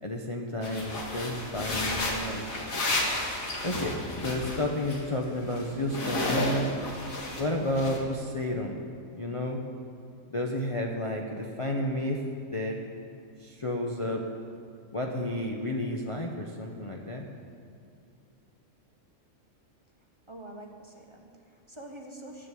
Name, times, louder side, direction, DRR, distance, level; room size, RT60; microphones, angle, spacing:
voice 1, 0.0-2.4 3.6-6.7 7.4-8.8 9.1-9.6 10.3-12.2 12.5-12.8 13.4-14.2 14.9-17.3, left 1 dB, 30° left, 0 dB, 0.7 m, -31 dB
sound 1, 0.6-5.0 5.3-7.5 7.8-8.0, left 2 dB, 80° left, 2.1 m, -32 dB
voice 2, 20.3-22.5, right 1 dB, 25° right, 1 dB, 1.1 m, -46 dB
12.0 x 7.6 x 8.3 m, 2.5 s
omnidirectional pair, 1.4 m